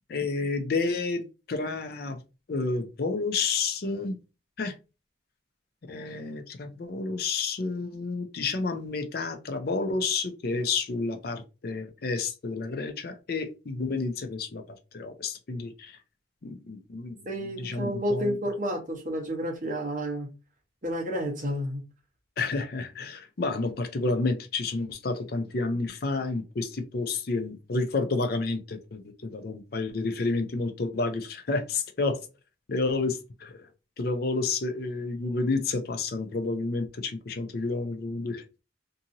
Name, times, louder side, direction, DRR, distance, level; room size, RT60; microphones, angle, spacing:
voice 1, 0.1-2.2 2.5-4.2 4.6-4.7 5.9-14.6 14.9-16.0 16.4-17.2 17.6-18.4 22.4-32.2 32.7-33.7 34.0-38.4, left 3 dB, 50° left, 0.5 m, -30 dB
voice 2, 17.2-20.3 20.8-21.8, equal, 45° right, 1.0 m, -30 dB
2.8 x 2.6 x 2.6 m
head